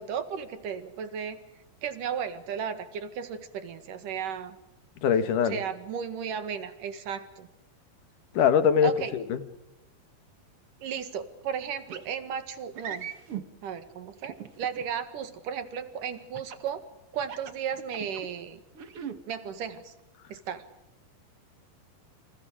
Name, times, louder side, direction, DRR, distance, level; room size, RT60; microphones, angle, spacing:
voice 1, 0.0-1.4 1.8-4.6 5.4-7.5 8.8-9.1 10.8-13.1 13.6-16.8 17.1-18.6 19.3-19.9 20.3-20.6, right 7 dB, 65° right, 10 dB, 3.3 m, -34 dB
voice 2, 5.0-5.6 8.3-9.4, left 7 dB, 65° left, 11 dB, 3.0 m, -23 dB
sound 1, 11.9-12.1 12.7-13.4 14.2-14.8 16.3-16.7 17.2-18.3 18.7-19.2, right 8 dB, 50° right, 2.0 m, -38 dB
29.0 x 27.5 x 5.0 m, 0.94 s
omnidirectional pair, 4.1 m